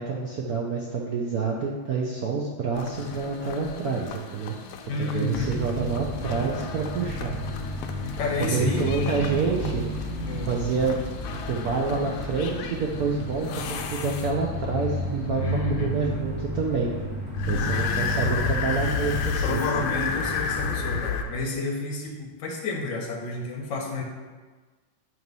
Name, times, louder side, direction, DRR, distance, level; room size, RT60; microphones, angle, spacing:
voice 1, 0.0-4.6 5.0-7.3 8.4-9.8 10.5-11.0 11.4-15.4 15.7-16.9 17.5-19.8, right 4 dB, 75° right, -2 dB, 0.8 m, -28 dB
sound 1, 2.7-14.6 17.3-21.2, left 6 dB, 80° left, 1.5 m, -33 dB
voice 2, 4.9-5.5 8.2-8.9 10.3-10.5 15.4-15.9 18.2-18.4 19.4-24.0, left 3 dB, 60° left, 0 dB, 1.6 m, -30 dB
sound 2, 5.3-21.0, equal, 30° right, 1.0 m, -32 dB
7.8 x 3.1 x 5.3 m, 1.4 s
omnidirectional pair, 2.4 m